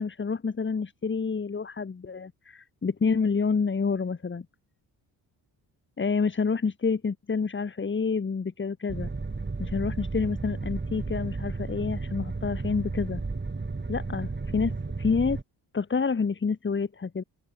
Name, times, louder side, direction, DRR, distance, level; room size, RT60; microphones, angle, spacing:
voice 1, 0.0-4.5 6.0-9.1 9.6-13.2 13.9-15.4 15.7-17.2, left 5 dB, 25° left, 1.3 m, -28 dB
sound 1, 8.9-15.4, right 3 dB, 25° right, 3.0 m, -33 dB
open air
supercardioid pair, 55°, 45 cm